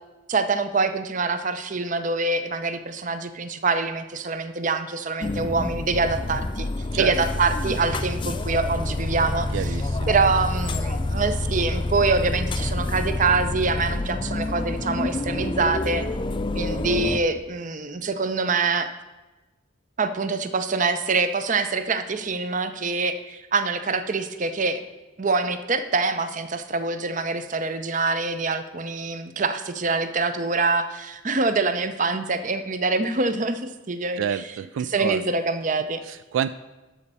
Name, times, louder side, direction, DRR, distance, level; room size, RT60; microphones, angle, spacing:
voice 1, 0.3-6.7 7.0-9.7 10.1-16.0 16.5-18.9 20.0-24.8 25.2-34.4 34.8-36.0, right 3 dB, 40° right, 10 dB, 0.6 m, -25 dB
sound 1, 5.2-17.2, left 2 dB, 25° left, 0.4 m, -28 dB
voice 2, 9.5-10.1 34.2-35.2 36.0-36.5, right 8 dB, 75° right, 14 dB, 0.3 m, -28 dB
12.5 x 4.2 x 6.7 m, 1.1 s
head